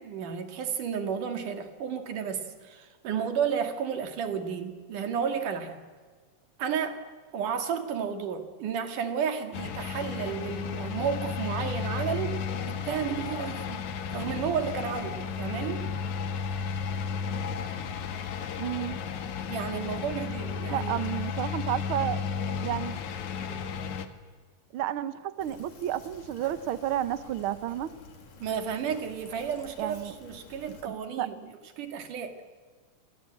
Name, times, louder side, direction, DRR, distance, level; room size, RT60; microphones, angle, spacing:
voice 1, 0.0-5.9 6.6-7.0 7.3-12.4 12.7-13.8 14.1-15.9 19.5-21.1 23.4-23.8 28.4-31.4 31.8-32.4, right 7 dB, 90° right, 7 dB, 3.7 m, -32 dB
sound 1, 9.5-24.1, left 6 dB, 70° left, 2.8 m, -33 dB
voice 2, 18.6-19.0 20.7-22.3 22.6-23.0 24.7-27.9 29.8-30.1 30.7-31.6, right 12 dB, 65° right, 14 dB, 1.3 m, -32 dB
Fill (with liquid), 25.4-30.8, left 4 dB, 90° left, 4.8 m, -51 dB
29.0 x 24.0 x 8.6 m, 1.5 s
omnidirectional pair, 3.5 m